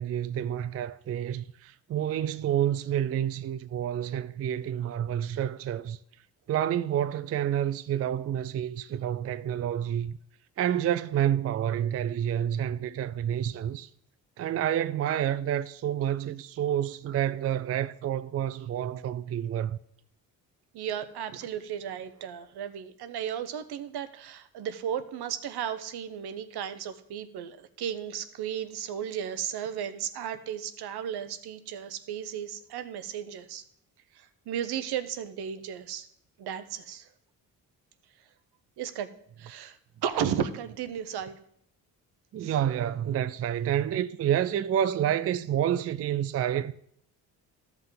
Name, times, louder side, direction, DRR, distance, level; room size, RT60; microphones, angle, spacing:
voice 1, 0.0-6.0 6.5-10.2 10.6-13.9 14.4-19.8 42.3-46.7, right 10 dB, 40° right, 0.4 m, -29 dB
voice 2, 20.7-33.6 34.1-36.1 36.4-37.1 38.8-39.1 39.4-39.8 40.0-41.4 42.4-42.5, right 9 dB, 75° right, 0.8 m, -34 dB
13.0 x 5.7 x 3.8 m
cardioid pair, 75°, 39 cm